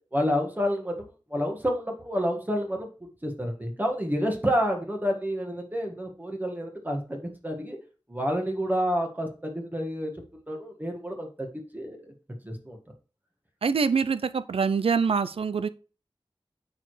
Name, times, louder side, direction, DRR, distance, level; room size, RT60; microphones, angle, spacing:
voice 1, 0.1-2.9 3.2-7.8 8.1-9.3 9.5-10.1 10.5-11.5 11.7-12.1 12.4-12.8, equal, 20° right, 1.6 m, -29 dB
voice 2, 13.6-15.7, right 5 dB, 85° right, 0.4 m, -25 dB
8.6 x 4.8 x 3.2 m
wide cardioid pair, 55°, 9 cm